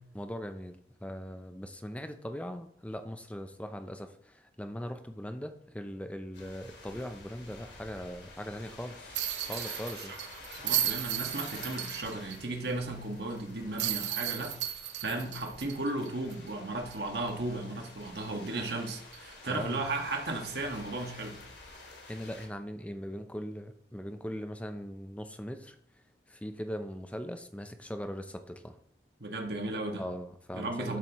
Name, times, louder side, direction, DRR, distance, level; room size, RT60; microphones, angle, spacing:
voice 1, 0.1-9.2 9.5-10.1 19.5-19.8 21.7-25.8 26.3-28.8 30.0-31.0, equal, 5° left, 8 dB, 0.7 m, -40 dB
sound 1, 6.3-22.5, left 3 dB, 75° left, 2.6 m, -50 dB
sound 2, 9.1-12.4 12.7-12.8 13.8-16.5 16.9-17.0 19.1-19.3, right 11 dB, 85° right, 1.0 m, -34 dB
voice 2, 10.6-14.6 15.0-21.4 29.2-30.0 30.5-31.0, right 2 dB, 65° right, 2 dB, 1.8 m, -35 dB
12.5 x 7.5 x 3.1 m, 0.67 s
head